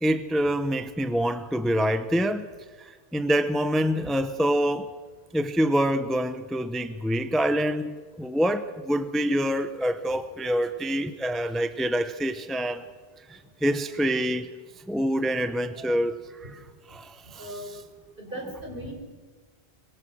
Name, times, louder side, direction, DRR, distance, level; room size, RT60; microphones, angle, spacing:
voice 1, 0.0-2.5 2.8-4.9 5.3-12.8 13.3-14.5 14.9-16.5 16.9-17.5, equal, ahead, 0.8 m, -26 dB
voice 2, 17.4-17.9 18.2-18.9, equal, 55° right, 5.3 m, -37 dB
25.5 x 22.5 x 6.3 m
omnidirectional pair, 1.1 m